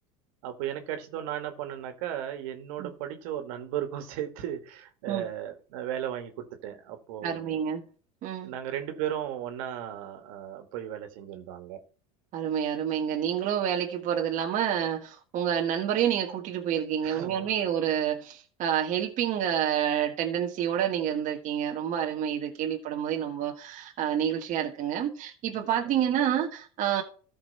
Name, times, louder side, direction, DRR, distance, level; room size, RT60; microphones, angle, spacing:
voice 1, 0.4-7.6 8.4-11.8 17.0-17.5 25.8-25.9, right 11 dB, 70° right, 2.1 m, -35 dB
voice 2, 7.2-7.8 8.2-8.5 12.3-27.0, right 9 dB, 45° right, 1.5 m, -28 dB
13.5 x 5.4 x 4.3 m
supercardioid pair, 105°, 18 cm